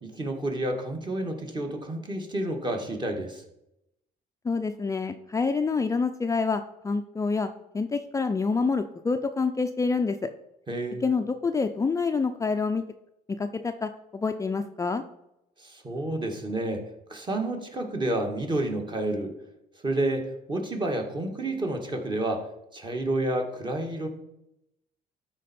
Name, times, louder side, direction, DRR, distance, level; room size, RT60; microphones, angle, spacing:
voice 1, 0.0-3.4 10.7-11.1 15.6-19.3 19.8-24.1, right 1 dB, 25° right, 3 dB, 1.7 m, -30 dB
voice 2, 4.4-7.5 7.7-10.3 11.0-12.8 13.4-15.0, left 4 dB, 20° left, 6 dB, 0.5 m, -27 dB
12.5 x 4.6 x 4.3 m, 0.84 s
cardioid pair, 110°, 17 cm